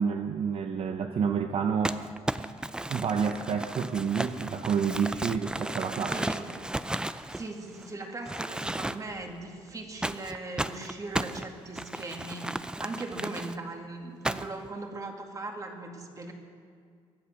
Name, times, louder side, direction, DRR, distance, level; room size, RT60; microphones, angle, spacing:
voice 1, 0.0-2.0 2.9-6.2, right 6 dB, 60° right, 5 dB, 0.8 m, -29 dB
Crumpling crinkling, 1.8-7.9 8.3-9.2 10.0-13.6 14.2-14.7, right 1 dB, 10° right, 0.4 m, -34 dB
voice 2, 6.1-6.4 7.3-16.3, right 2 dB, 30° right, 3 dB, 2.2 m, -39 dB
23.0 x 8.4 x 6.5 m, 2.1 s
cardioid pair, 110°, 11 cm